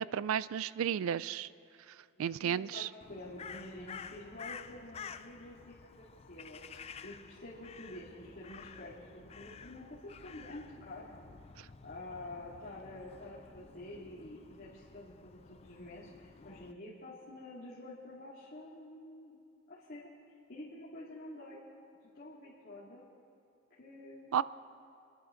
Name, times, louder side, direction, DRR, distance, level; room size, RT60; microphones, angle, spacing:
voice 1, 0.0-1.5 1.9-2.9 24.3-24.4, right 8 dB, 75° right, 18 dB, 0.3 m, -33 dB
voice 2, 2.4-11.2 11.8-19.4 19.7-20.1 20.5-21.7 22.1-23.1 23.8-24.4, left 1 dB, 45° left, -8 dB, 2.3 m, -48 dB
Crow, 3.0-16.7, left 6 dB, 30° left, 0.3 m, -51 dB
27.0 x 10.5 x 3.8 m, 2.6 s
head